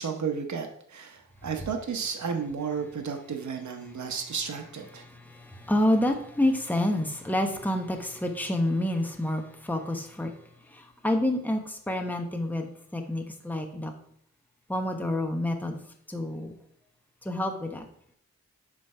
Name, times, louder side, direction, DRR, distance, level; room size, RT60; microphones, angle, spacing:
voice 1, 0.0-5.0, right 6 dB, 65° right, 4 dB, 0.9 m, -33 dB
voice 2, 4.9-10.3 10.7-13.9 14.7-15.8 16.1-16.5 17.2-17.8, left 1 dB, 5° left, 3 dB, 1.0 m, -28 dB
7.3 x 3.2 x 5.5 m, 0.68 s
cardioid pair, 55°, 31 cm